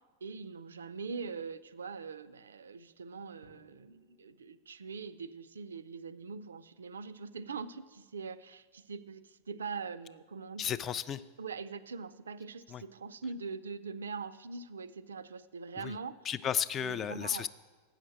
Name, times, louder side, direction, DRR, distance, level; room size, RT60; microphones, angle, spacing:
voice 1, 0.2-10.7 11.4-16.2 16.8-17.5, right 5 dB, 70° right, 14 dB, 0.4 m, -42 dB
Drum, 3.4-5.6, equal, 85° left, 1.1 m, -65 dB
voice 2, 10.6-11.2 12.7-12.8 15.8-15.9 16.2-17.5, left 9 dB, 30° left, 16 dB, 0.3 m, -33 dB
7.6 x 6.5 x 7.6 m, 1.3 s
figure-of-eight pair, 90°, 0 cm